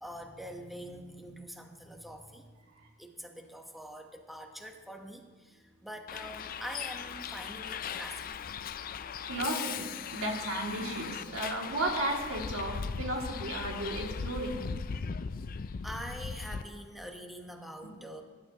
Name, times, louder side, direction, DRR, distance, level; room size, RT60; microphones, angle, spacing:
voice 1, 0.0-2.4 3.0-8.4 15.8-18.2, equal, ahead, 2 dB, 1.1 m, -44 dB
Bus, 6.1-16.6, left 6 dB, 45° left, 0.4 m, -38 dB
voice 2, 9.3-14.6, right 1 dB, 80° right, -1 dB, 2.5 m, -34 dB
22.0 x 11.0 x 3.0 m, 1.4 s
head